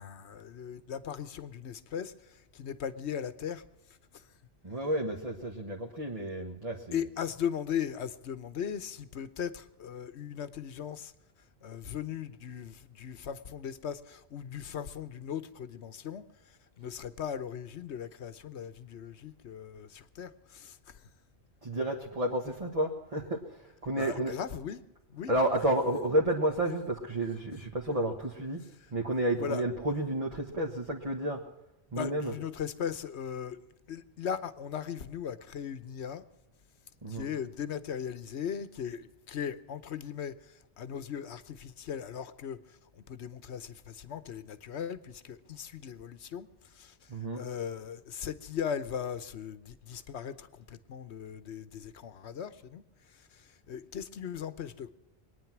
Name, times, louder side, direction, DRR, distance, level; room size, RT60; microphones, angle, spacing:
voice 1, 0.0-4.3 6.9-11.1 11.6-21.1 24.0-24.8 25.1-25.3 29.4-29.6 31.9-36.2 37.1-54.9, left 8 dB, 90° left, 1.2 m, -38 dB
voice 2, 4.6-7.1 21.6-24.4 25.3-28.6 28.9-31.4 31.9-32.4 37.0-37.3 47.1-47.4, right 1 dB, 35° right, 1.6 m, -31 dB
24.0 x 9.8 x 6.0 m
omnidirectional pair, 1.1 m